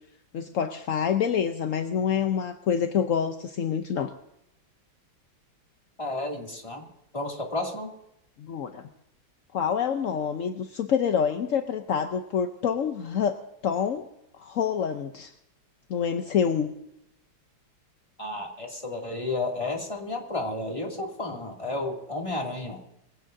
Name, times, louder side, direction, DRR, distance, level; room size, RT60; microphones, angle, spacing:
voice 1, 0.3-4.1 8.4-8.9 9.5-13.4 13.6-14.0 14.3-15.3 15.9-16.7, left 7 dB, 60° left, 7 dB, 0.8 m, -27 dB
voice 2, 6.0-6.9 7.1-7.9 18.2-22.8, left 2 dB, 15° left, 0 dB, 2.6 m, -32 dB
23.0 x 16.5 x 2.7 m, 0.87 s
omnidirectional pair, 2.2 m